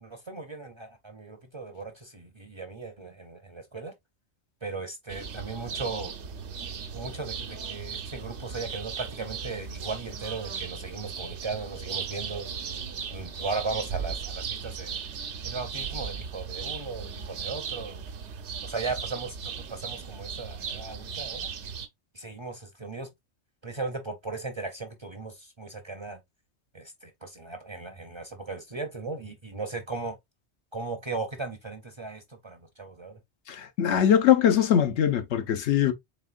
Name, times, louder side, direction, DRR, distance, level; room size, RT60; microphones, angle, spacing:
voice 1, 0.0-3.9 4.6-6.1 6.9-12.5 13.1-15.0 15.4-18.0 18.6-21.5 22.1-23.1 23.6-26.2 26.7-30.2 30.7-33.2, right 3 dB, 35° right, 0.5 m, -37 dB
sound 1, 5.1-21.9, right 6 dB, 85° right, 1.0 m, -37 dB
voice 2, 33.5-35.9, left 9 dB, 85° left, 1.0 m, -22 dB
4.1 x 3.6 x 2.3 m
omnidirectional pair, 1.1 m